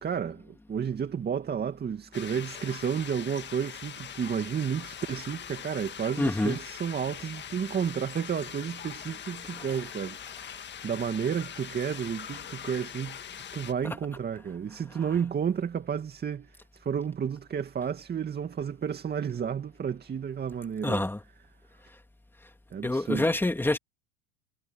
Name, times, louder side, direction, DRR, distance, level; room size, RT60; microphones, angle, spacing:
voice 1, 0.0-13.2 13.5-21.0 22.7-23.3, right 7 dB, 25° right, 2.2 m, -32 dB
sound 1, 2.1-13.7, left 9 dB, 30° left, 1.7 m, -42 dB
voice 2, 6.2-6.6 9.6-9.7 20.8-21.2 22.8-23.8, left 2 dB, 5° left, 2.9 m, -26 dB
supercardioid pair, 105°, 36 cm